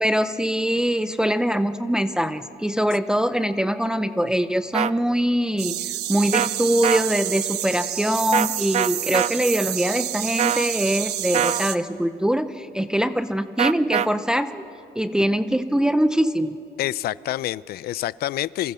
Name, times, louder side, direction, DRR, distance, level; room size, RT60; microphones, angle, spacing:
voice 1, 0.0-5.8 6.1-14.7 15.0-16.6, equal, 5° right, 9 dB, 0.7 m, -23 dB
sound 1, 4.7-4.9 6.3-6.5 6.8-7.0 8.3-8.5 8.7-9.3 10.4-10.7 11.3-11.6 13.6-14.1, right 9 dB, 40° right, 0.6 m, -22 dB
sound 2, 5.6-11.8, right 13 dB, 80° right, 1.1 m, -29 dB
voice 2, 16.8-18.7, left 14 dB, 65° left, 20 dB, 0.6 m, -27 dB
30.0 x 24.0 x 6.9 m, 2.6 s
cardioid pair, 110°, 17 cm